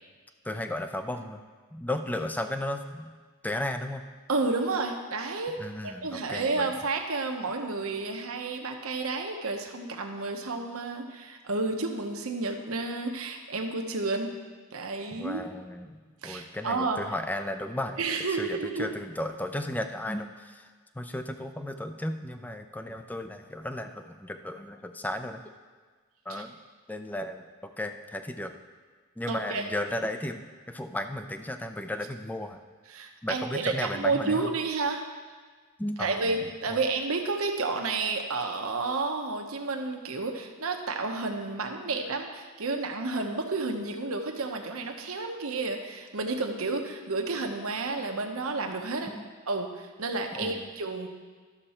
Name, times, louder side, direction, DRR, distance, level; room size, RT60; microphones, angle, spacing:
voice 1, 0.4-1.4 1.7-3.1 3.4-4.0 5.6-6.7 15.1-18.0 18.4-20.7 20.9-25.4 26.3-26.5 26.9-28.5 29.2-32.6 33.2-34.5 35.8-36.8 49.1-49.3 50.4-50.7, left 1 dB, 10° left, 7 dB, 0.4 m, -35 dB
voice 2, 4.3-5.6 5.8-14.3 14.7-15.4 16.2-17.0 18.0-18.9 26.3-26.4 29.3-29.7 32.9-35.0 36.0-49.1 49.5-51.1, right 3 dB, 70° right, 3 dB, 1.0 m, -31 dB
12.0 x 6.7 x 4.3 m, 1.5 s
head